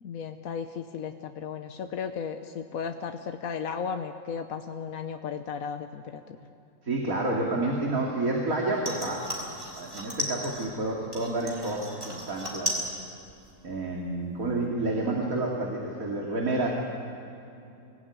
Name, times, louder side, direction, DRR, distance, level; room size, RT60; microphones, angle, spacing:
voice 1, 0.0-6.4, left 6 dB, 70° left, 6 dB, 1.3 m, -35 dB
voice 2, 6.8-9.3 9.7-12.8 13.6-16.7, right 2 dB, 70° right, -2 dB, 3.0 m, -29 dB
sound 1, 8.8-10.7 11.1-12.9 13.2-13.8 14.1-14.2, equal, 35° right, 4.5 m, -35 dB
25.5 x 17.5 x 9.6 m, 2.8 s
omnidirectional pair, 1.5 m